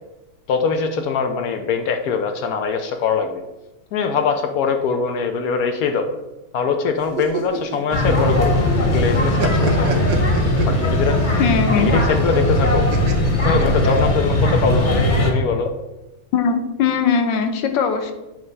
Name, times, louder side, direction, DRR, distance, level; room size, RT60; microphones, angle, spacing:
voice 1, 0.5-3.4 3.9-6.1 6.5-10.0 10.7-11.3 11.7-12.8 13.4-15.7, left 5 dB, 90° left, 5 dB, 0.8 m, -22 dB
sound 1, 7.0-8.7 9.0-11.3 12.9-14.4, right 6 dB, 55° right, 1.1 m, -28 dB
sound 2, 7.9-15.3, left 1 dB, 35° left, 0.9 m, -18 dB
voice 2, 11.4-11.9 16.3-18.1, left 6 dB, 75° left, 6 dB, 1.4 m, -19 dB
7.7 x 3.2 x 5.3 m, 1.0 s
omnidirectional pair, 2.2 m